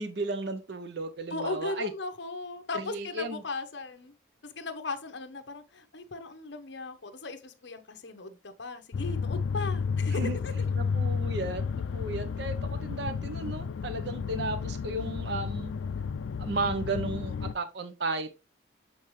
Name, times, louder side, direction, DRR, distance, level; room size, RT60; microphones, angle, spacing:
voice 1, 0.0-1.9 2.7-3.4 10.1-10.4 10.8-11.6 11.9-15.7 16.4-18.4, right 2 dB, 60° right, 0.7 m, -34 dB
voice 2, 1.3-4.1 4.4-10.7, left 3 dB, 65° left, 0.9 m, -37 dB
sound 1, 8.9-17.5, left 5 dB, 90° left, 0.4 m, -32 dB
7.7 x 4.0 x 3.2 m
head